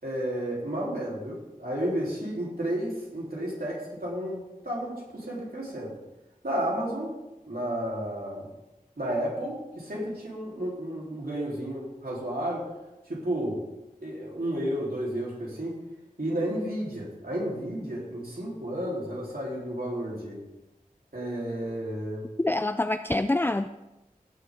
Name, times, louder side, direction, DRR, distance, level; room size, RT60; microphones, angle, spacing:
voice 1, 0.0-6.0 6.4-7.1 7.5-8.5 9.0-12.6 13.1-13.6 14.0-15.8 16.2-20.4 21.1-22.2, right 1 dB, 80° right, -5 dB, 3.8 m, -32 dB
voice 2, 22.4-23.7, left 2 dB, 15° left, 10 dB, 0.4 m, -26 dB
17.0 x 7.3 x 3.8 m, 1.0 s
wide cardioid pair, 40°, 15 cm